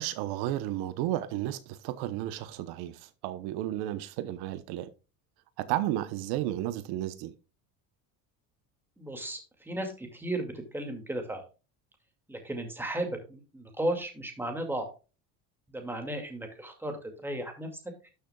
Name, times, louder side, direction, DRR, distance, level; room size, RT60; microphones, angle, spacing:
voice 1, 0.0-4.9 5.6-7.3, right 14 dB, 85° right, 1.0 m, -33 dB
voice 2, 9.0-11.4 12.3-14.9 15.7-18.1, right 1 dB, 5° right, 2.3 m, -35 dB
12.5 x 6.7 x 2.3 m
cardioid pair, 150°, 37 cm